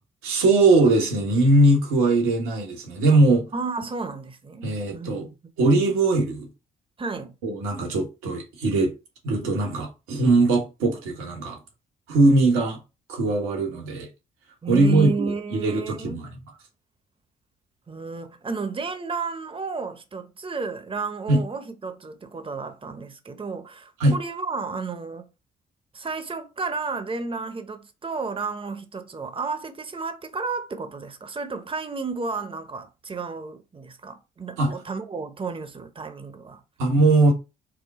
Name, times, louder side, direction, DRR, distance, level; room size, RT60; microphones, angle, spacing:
voice 1, 0.2-3.5 4.6-5.3 5.6-6.5 7.4-8.9 9.2-11.6 12.1-12.8 13.1-14.1 14.7-16.3 21.3-21.4 24.0-24.2 34.6-34.7 36.8-37.3, right 2 dB, 80° right, 1.3 m, -20 dB
voice 2, 3.5-4.7 4.9-5.3 7.0-7.3 14.6-16.3 17.9-25.3 25.9-36.6, right 4 dB, 25° right, 0.9 m, -32 dB
4.9 x 2.2 x 4.2 m
hypercardioid pair, 50°, 21 cm